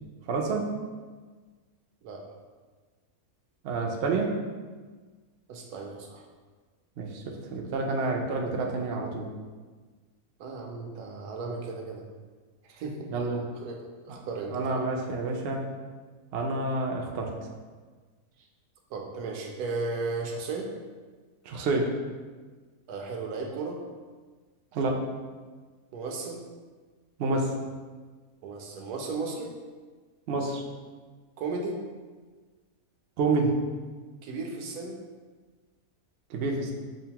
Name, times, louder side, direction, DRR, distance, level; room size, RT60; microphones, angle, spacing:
voice 1, 0.3-0.7 3.6-4.3 7.0-9.3 13.1-13.4 14.1-14.2 14.5-15.6 16.3-17.3 21.5-21.9 24.7-25.0 27.2-27.5 30.3-30.6 33.2-33.5 36.3-36.7, right 3 dB, 70° right, 1 dB, 0.6 m, -28 dB
voice 2, 5.5-6.2 10.4-12.0 12.6-13.1 13.6-14.8 18.9-20.7 22.9-23.8 25.9-26.4 28.4-29.5 31.4-31.8 34.2-35.0, right 3 dB, 85° right, 1 dB, 1.1 m, -35 dB
5.2 x 2.1 x 2.8 m, 1.4 s
omnidirectional pair, 1.6 m